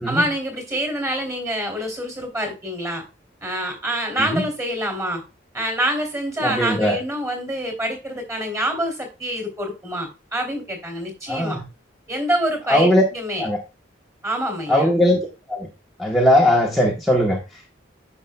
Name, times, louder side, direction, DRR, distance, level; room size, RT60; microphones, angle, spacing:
voice 1, 0.1-3.0 3.4-5.2 5.5-11.6 12.1-13.4 14.2-14.9, equal, 15° right, 2 dB, 2.8 m, -26 dB
voice 2, 6.4-7.0 11.3-11.6 12.7-13.0 13.4-13.6 14.7-15.7 16.0-17.8, left 1 dB, ahead, -1 dB, 1.0 m, -19 dB
9.9 x 6.7 x 2.2 m, 0.29 s
head